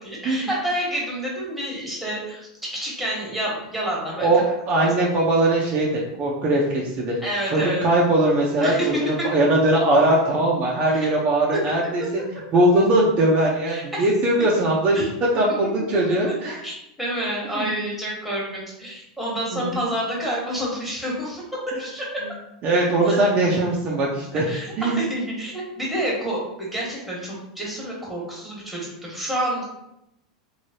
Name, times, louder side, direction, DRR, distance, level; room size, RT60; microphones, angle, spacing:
voice 1, 0.0-4.3 4.7-4.9 7.2-7.8 8.6-8.9 9.2-9.3 10.9-11.1 11.5-11.6 13.7-13.8 14.9-15.0 16.6-22.2 23.0-23.1 24.3-29.7, right 1 dB, ahead, -5 dB, 1.4 m, -28 dB
voice 2, 4.2-5.9 6.2-7.1 7.5-12.2 12.5-15.1 15.3-16.6 17.5-17.7 19.5-19.7 22.6-24.4 24.8-25.0, right 1 dB, 40° right, -3 dB, 0.7 m, -20 dB
3.2 x 2.8 x 2.8 m, 0.82 s
hypercardioid pair, 115°, 4 cm